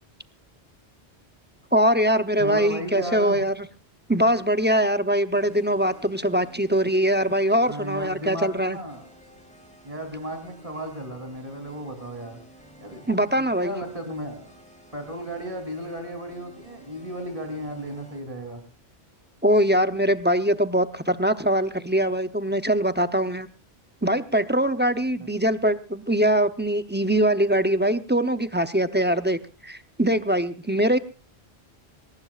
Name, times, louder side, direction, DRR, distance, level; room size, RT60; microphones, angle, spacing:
voice 1, 1.7-3.5 4.1-8.8 13.1-13.7 19.4-23.5 24.0-31.0, equal, 10° right, 10 dB, 0.6 m, -22 dB
voice 2, 2.4-3.4 7.7-9.1 9.8-12.4 12.8-13.1 13.4-14.5 14.9-18.6, equal, 30° right, 6 dB, 3.4 m, -34 dB
sound 1, 5.3-18.2, equal, 5° left, 3.3 m, -52 dB
22.0 x 19.0 x 2.4 m, 0.32 s
omnidirectional pair, 1.1 m